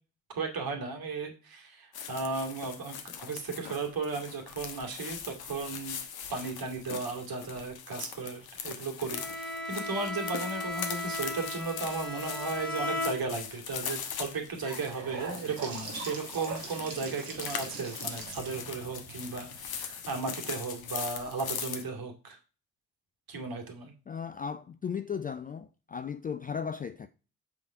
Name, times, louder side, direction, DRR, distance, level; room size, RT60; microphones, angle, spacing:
voice 1, 0.3-6.0 6.3-22.4 23.3-23.9, right 4 dB, 45° right, 2.2 m, -35 dB
sound 1, 1.9-21.8, left 7 dB, 50° left, 1.2 m, -41 dB
Bowed string instrument, 9.1-13.7, left 2 dB, ahead, 2.3 m, -36 dB
Gurgling / Sink (filling or washing) / Bathtub (filling or washing), 14.2-20.3, right 4 dB, 85° right, 1.4 m, -42 dB
voice 2, 24.1-27.1, left 6 dB, 20° left, 0.4 m, -36 dB
7.5 x 4.0 x 4.7 m
figure-of-eight pair, 45°, 47 cm